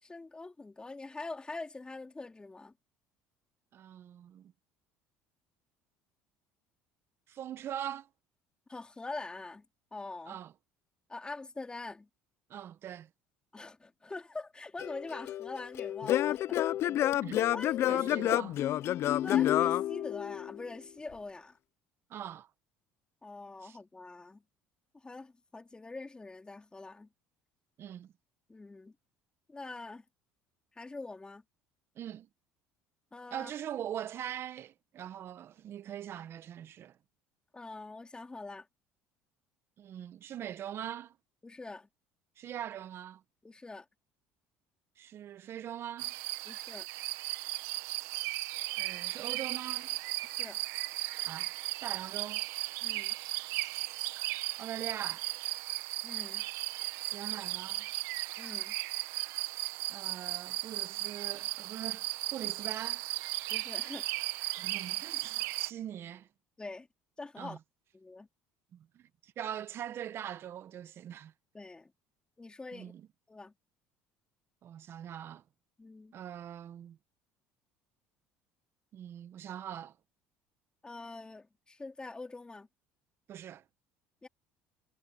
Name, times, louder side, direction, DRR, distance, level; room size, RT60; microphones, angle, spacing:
voice 1, 0.0-2.7 8.7-9.7 9.9-10.4 11.1-12.1 13.5-16.6 17.5-18.1 19.2-21.6 23.2-24.4 24.9-27.1 28.5-28.9 29.5-30.0 30.7-31.4 33.1-33.5 37.5-38.7 41.4-41.9 43.4-43.9 46.5-46.9 50.2-50.6 52.8-53.1 56.0-56.4 58.4-58.7 63.5-64.1 66.6-66.9 67.2-67.6 67.9-68.3 71.5-71.9 72.4-72.9 73.3-73.5 75.8-76.2 80.8-82.7 84.2-84.3, left 3 dB, 15° left, 3.9 m, -44 dB
voice 2, 3.7-4.5 7.3-8.1 10.3-10.5 12.5-13.1 16.9-17.5 17.9-18.6 22.1-22.5 23.6-23.8 27.8-28.1 31.9-32.3 33.3-37.0 39.8-41.1 42.4-43.2 45.0-46.1 48.8-50.0 51.3-51.5 51.8-52.5 54.6-55.3 57.1-57.9 59.9-63.1 64.6-66.3 67.4-67.6 68.7-71.3 72.7-73.1 74.6-75.4 76.1-77.0 78.9-79.9 83.3-83.6, right 10 dB, 50° right, 1.6 m, -42 dB
Singing / Plucked string instrument, 14.8-20.7, left 12 dB, 60° left, 0.7 m, -29 dB
sound 1, 46.0-65.7, right 20 dB, 75° right, 1.3 m, -36 dB
supercardioid pair, 80°, 5 cm